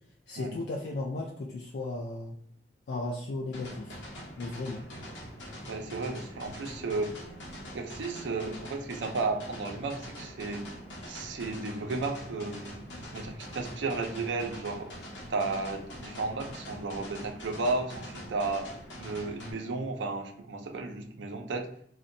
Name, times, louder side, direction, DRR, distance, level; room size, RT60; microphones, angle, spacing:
voice 1, 0.3-2.4 2.9-4.0 4.4-4.8, left 2 dB, 60° left, -2 dB, 0.3 m, -35 dB
sound 1, 3.5-19.5, equal, 80° left, 0.8 m, -44 dB
voice 2, 5.7-7.2 7.7-10.7 11.1-12.9 13.1-14.9 15.3-18.7 19.0-21.7, right 3 dB, 85° right, 4 dB, 0.4 m, -33 dB
2.6 x 2.1 x 2.5 m, 0.64 s
head